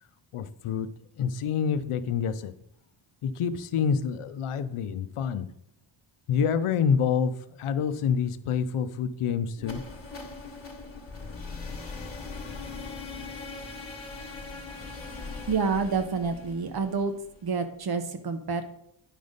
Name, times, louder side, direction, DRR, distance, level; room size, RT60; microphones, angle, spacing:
voice 1, 0.3-0.9 1.2-2.5 3.2-5.5 6.3-7.3 7.6-9.8, left 7 dB, 85° left, 12 dB, 0.7 m, -27 dB
sound 1, 9.6-17.5, left 4 dB, 25° left, 1.4 m, -40 dB
voice 2, 15.5-17.1 17.4-18.6, right 5 dB, 50° right, 8 dB, 0.9 m, -28 dB
10.0 x 5.1 x 4.0 m, 0.73 s
wide cardioid pair, 150°, 49 cm